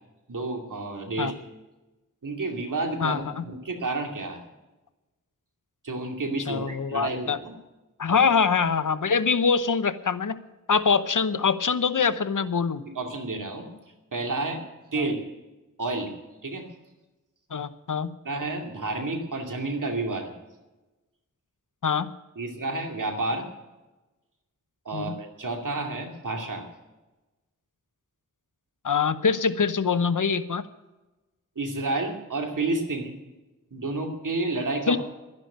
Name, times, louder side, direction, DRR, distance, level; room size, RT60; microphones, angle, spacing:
voice 1, 0.3-1.3 2.2-4.4 5.8-7.5 8.1-8.2 12.9-13.7 14.1-14.6 14.9-15.2 15.8-16.1 16.4-16.7 18.2-20.3 22.4-23.5 24.8-26.7 31.6-33.1 33.7-35.0, right 2 dB, 90° right, 3 dB, 2.6 m, -30 dB
voice 2, 3.0-3.4 6.5-7.4 8.0-10.4 10.7-12.8 15.0-15.1 17.5-18.1 21.8-22.1 24.9-25.2 28.8-30.6 34.9-35.0, left 5 dB, 85° left, 13 dB, 0.9 m, -24 dB
12.0 x 11.0 x 8.6 m, 1.1 s
wide cardioid pair, 60°, 31 cm